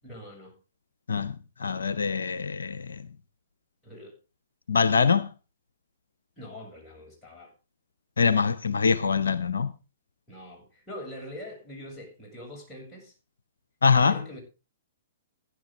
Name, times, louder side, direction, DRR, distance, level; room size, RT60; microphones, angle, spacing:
voice 1, 0.0-0.6 3.8-4.2 6.4-7.5 10.3-13.1 14.0-14.4, left 1 dB, 10° left, 7.1 m, -43 dB
voice 2, 1.6-3.0 4.7-5.3 8.2-9.7 13.8-14.1, left 5 dB, 75° left, 0.6 m, -23 dB
15.5 x 10.5 x 3.7 m
figure-of-eight pair, 115°, 0 cm